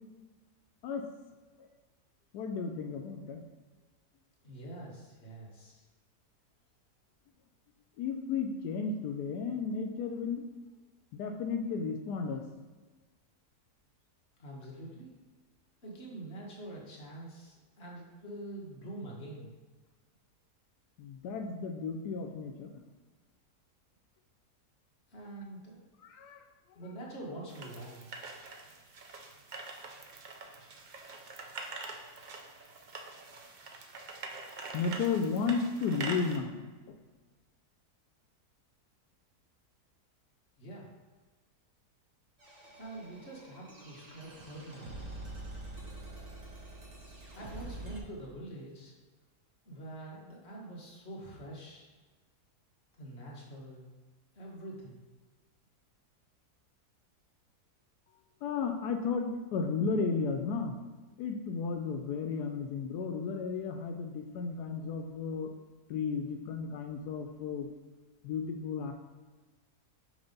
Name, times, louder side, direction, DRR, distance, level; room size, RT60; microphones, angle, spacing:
voice 1, 2.3-3.4 8.0-10.5 11.1-12.4 21.0-22.8 26.0-26.4 26.7-26.8 34.7-37.0 58.4-60.8 61.2-65.5 65.9-67.7 68.2-68.9, left 5 dB, 85° left, 4 dB, 1.2 m, -34 dB
voice 2, 4.4-5.8 14.4-15.1 15.8-19.5 25.1-25.8 26.7-28.1 40.6-40.9 42.8-45.1 47.3-48.9 49.6-51.9 53.0-53.8 54.3-54.9, right 1 dB, 45° left, -4 dB, 1.6 m, -45 dB
sound 1, 27.5-36.4, right 3 dB, 75° right, 0.4 m, -44 dB
sound 2, 42.4-48.0, right 2 dB, 30° right, 0.8 m, -46 dB
6.2 x 3.3 x 5.2 m, 1.3 s
omnidirectional pair, 1.7 m